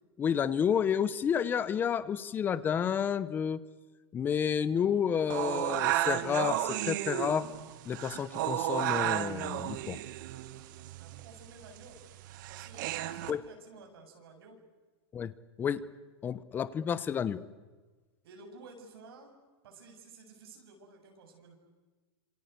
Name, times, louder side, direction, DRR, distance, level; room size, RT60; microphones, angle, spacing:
voice 1, 0.2-3.6 4.1-7.5 7.9-10.0 13.3-13.4 15.1-15.3 15.6-15.8 16.2-17.4, left 8 dB, 15° left, 16 dB, 0.8 m, -30 dB
sound 1, 5.3-13.3, right 14 dB, 45° right, 1.4 m, -33 dB
voice 2, 11.0-12.0 12.5-14.6 18.2-19.3 19.6-21.6, right 3 dB, 65° right, 3 dB, 7.7 m, -53 dB
27.5 x 26.0 x 8.2 m, 1.3 s
supercardioid pair, 165°, 14 cm